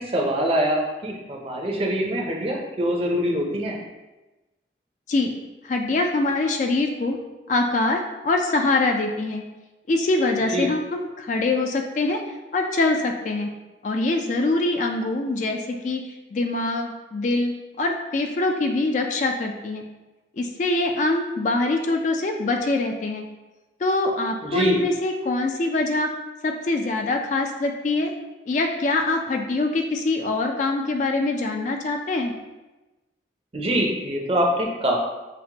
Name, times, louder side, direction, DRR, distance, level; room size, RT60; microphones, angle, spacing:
voice 1, 0.0-3.8 10.5-10.7 24.4-24.8 33.5-35.0, equal, 30° right, 0 dB, 0.5 m, -24 dB
voice 2, 5.7-7.2 7.5-9.4 9.9-12.2 12.5-13.5 13.8-15.6 15.8-16.0 16.3-19.8 20.4-23.3 23.8-26.1 26.4-28.1 28.5-32.3, left 2 dB, 40° left, 3 dB, 0.3 m, -24 dB
5.8 x 2.1 x 2.8 m, 1.1 s
head